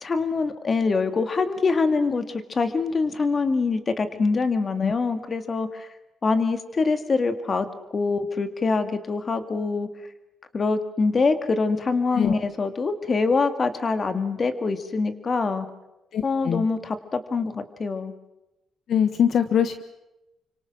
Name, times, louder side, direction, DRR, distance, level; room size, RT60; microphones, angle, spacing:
voice 1, 0.0-5.9 6.2-7.7 7.9-9.9 10.5-15.7 16.2-18.1, left 4 dB, 30° left, 9 dB, 2.1 m, -24 dB
voice 2, 16.1-16.7 18.9-19.8, left 8 dB, 55° left, 9 dB, 1.3 m, -23 dB
29.5 x 25.5 x 6.2 m, 0.95 s
cardioid pair, 145°, 0 cm